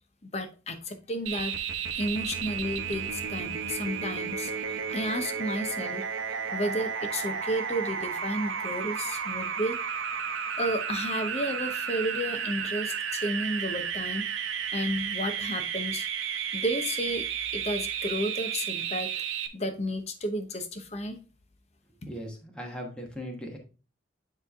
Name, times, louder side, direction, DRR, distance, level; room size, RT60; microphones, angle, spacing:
voice 1, 0.3-1.6 2.0-6.1 6.5-9.8 10.6-14.3 14.7-16.1 16.5-17.2 17.5-19.1 19.5-21.2, equal, 35° left, 7 dB, 0.8 m, -32 dB
sound 1, 1.3-19.5, right 7 dB, 85° right, 0.8 m, -33 dB
voice 2, 22.0-23.6, equal, 5° left, 0 dB, 1.2 m, -38 dB
9.4 x 3.3 x 3.5 m, 0.34 s
head